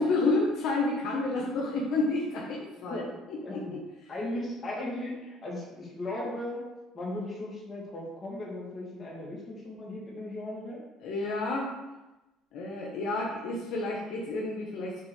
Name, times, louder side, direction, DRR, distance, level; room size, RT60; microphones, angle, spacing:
voice 1, 0.0-4.1 11.0-11.7 12.5-15.0, left 2 dB, 70° left, -2 dB, 1.4 m, -30 dB
voice 2, 2.9-3.8 4.1-6.6 6.9-10.8, left 1 dB, 30° left, -3 dB, 2.8 m, -37 dB
7.4 x 3.8 x 6.5 m, 1.0 s
cardioid pair, 110°, 0 cm